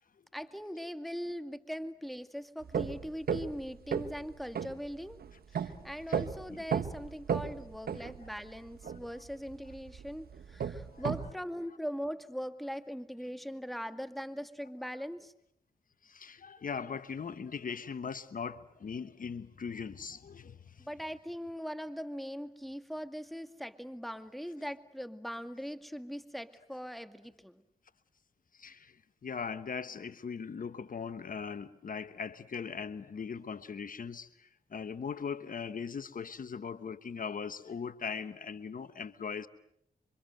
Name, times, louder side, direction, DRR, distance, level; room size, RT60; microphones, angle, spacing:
voice 1, 0.3-5.2 5.5-15.3 20.8-27.6, equal, ahead, 9 dB, 2.2 m, -40 dB
sound 1, 2.6-11.3, right 7 dB, 75° right, 1.4 m, -35 dB
voice 2, 16.0-20.9 28.5-39.5, left 6 dB, 60° left, 13 dB, 1.2 m, -40 dB
28.0 x 25.0 x 7.8 m, 0.74 s
supercardioid pair, 45°, 16 cm